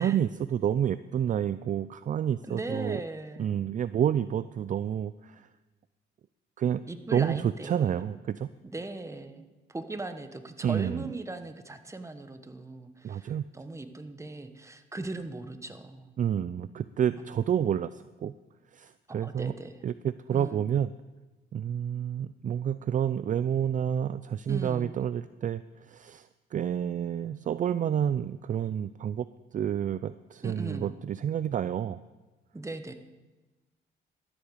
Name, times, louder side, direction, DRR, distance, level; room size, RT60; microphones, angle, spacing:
voice 1, 0.0-3.0 3.4-5.5 6.6-6.8 7.1-8.5 10.6-11.1 13.0-13.4 16.2-18.3 18.7-19.5 19.8-20.9 21.5-29.3 29.5-32.0, right 9 dB, 40° right, 15 dB, 0.4 m, -29 dB
voice 2, 2.5-3.6 6.9-8.0 8.7-16.2 19.1-19.7 20.3-20.7 24.5-24.9 30.4-30.9 32.5-32.9, right 2 dB, 15° right, 8 dB, 1.1 m, -39 dB
13.0 x 8.2 x 6.8 m, 1.2 s
cardioid pair, 90°, 20 cm